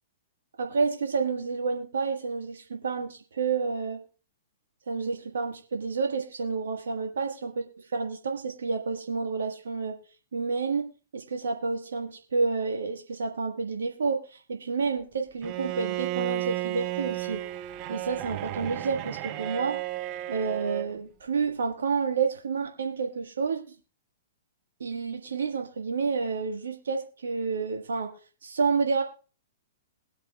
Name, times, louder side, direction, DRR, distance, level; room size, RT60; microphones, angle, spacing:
voice 1, 0.6-4.0 4.9-10.0 10.3-10.9 11.1-17.4 17.9-19.8 20.3-23.7 24.8-28.1 28.4-29.0, right 4 dB, 70° right, 3 dB, 1.5 m, -29 dB
Bowed string instrument, 15.4-20.9, right 16 dB, 35° right, 0.6 m, -33 dB
21.5 x 8.3 x 2.4 m, 0.35 s
figure-of-eight pair, 110°, 0 cm